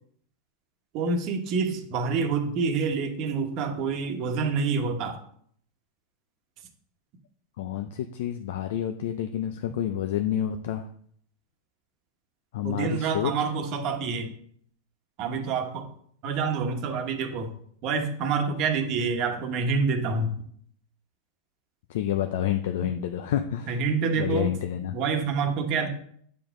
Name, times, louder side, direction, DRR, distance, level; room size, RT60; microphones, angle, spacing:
voice 1, 0.9-5.2 12.6-14.3 15.2-15.9 16.2-17.5 17.8-20.4 23.7-24.5 24.9-25.9, right 5 dB, 45° right, 5 dB, 1.2 m, -27 dB
voice 2, 7.6-10.9 12.5-13.3 21.9-23.7 24.2-24.9, left 10 dB, 75° left, 7 dB, 0.5 m, -29 dB
9.1 x 5.1 x 3.7 m, 0.63 s
supercardioid pair, 140°, 0 cm